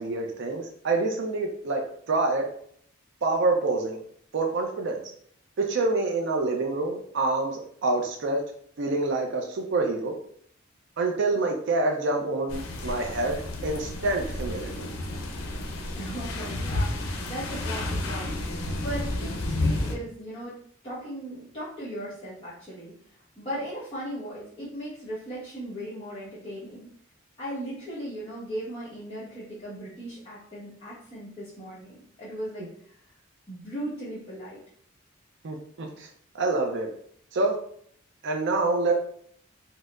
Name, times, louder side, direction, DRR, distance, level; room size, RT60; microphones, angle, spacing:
voice 1, 0.0-1.8 2.1-2.4 3.2-4.0 4.3-5.1 5.6-8.4 8.8-10.1 11.0-14.9 32.6-32.7 35.4-36.1 36.3-36.9 37.3-37.6 38.2-38.9, right 3 dB, 60° right, 2 dB, 0.4 m, -27 dB
sound 1, 12.5-19.9, left 1 dB, 80° left, 0.6 m, -31 dB
voice 2, 16.0-18.5 18.8-20.5 20.8-26.9 27.4-33.1 33.5-34.6, equal, 30° left, -10 dB, 1.0 m, -37 dB
4.2 x 2.0 x 2.3 m, 0.62 s
head